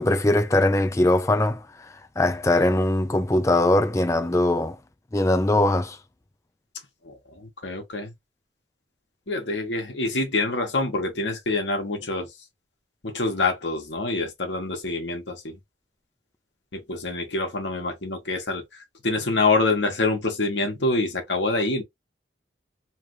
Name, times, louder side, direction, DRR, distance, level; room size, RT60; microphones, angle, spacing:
voice 1, 0.0-4.8 5.1-6.0, left 1 dB, 15° left, 0.4 m, -21 dB
voice 2, 7.4-8.1 9.3-12.3 13.0-15.6 16.7-18.6 19.0-21.8, left 3 dB, 70° left, 1.3 m, -26 dB
3.3 x 2.4 x 3.1 m
head